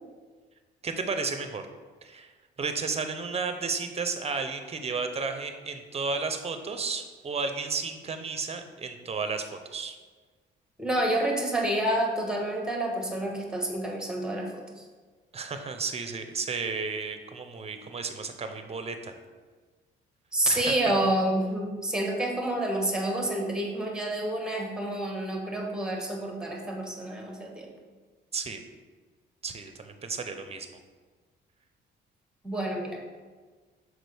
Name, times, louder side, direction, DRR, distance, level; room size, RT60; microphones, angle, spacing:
voice 1, 0.8-1.6 2.0-2.3 2.6-10.0 15.3-19.2 20.5-20.7 28.3-28.6 29.4-30.8, right 4 dB, 30° right, 7 dB, 0.7 m, -33 dB
voice 2, 10.8-14.6 20.3-27.7 32.4-33.0, right 1 dB, 5° right, 1 dB, 1.2 m, -28 dB
6.0 x 4.7 x 3.4 m, 1.4 s
cardioid pair, 90°, 20 cm